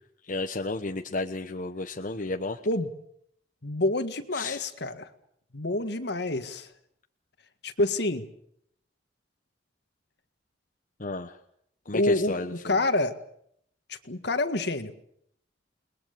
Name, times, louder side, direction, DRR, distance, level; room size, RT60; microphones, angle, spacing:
voice 1, 0.3-2.6 4.3-4.6 11.0-11.4 11.9-12.7, left 2 dB, 45° left, 5 dB, 1.1 m, -32 dB
voice 2, 3.6-5.1 5.5-6.7 7.6-8.3 11.9-13.2 13.9-14.9, left 2 dB, 65° left, 9 dB, 1.9 m, -27 dB
29.5 x 21.5 x 6.9 m, 0.70 s
head